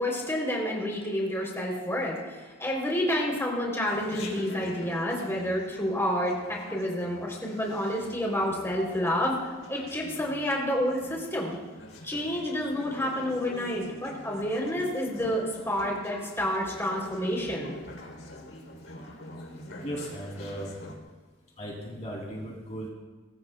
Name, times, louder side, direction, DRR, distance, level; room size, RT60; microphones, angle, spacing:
voice 1, 0.0-9.4 9.7-11.6 12.0-17.7, equal, 10° left, -2 dB, 3.5 m, -29 dB
Chatter, 3.8-21.0, left 1 dB, 70° left, 3.5 m, -45 dB
voice 2, 19.8-20.7 21.6-22.9, right 1 dB, 35° left, -2 dB, 3.2 m, -36 dB
24.5 x 21.5 x 2.4 m, 1.3 s
head